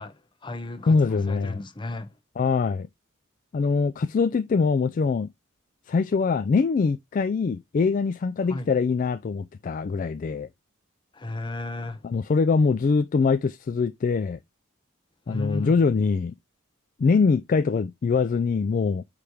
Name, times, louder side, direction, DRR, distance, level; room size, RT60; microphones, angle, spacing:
voice 1, 0.0-2.1 8.5-8.7 11.1-12.0 15.3-15.8, left 2 dB, 25° left, 0.8 m, -34 dB
voice 2, 0.9-1.6 2.4-2.9 3.5-5.3 5.9-10.5 12.0-14.4 15.3-16.3 17.0-19.0, left 4 dB, 40° left, 0.3 m, -23 dB
8.5 x 3.3 x 3.4 m
head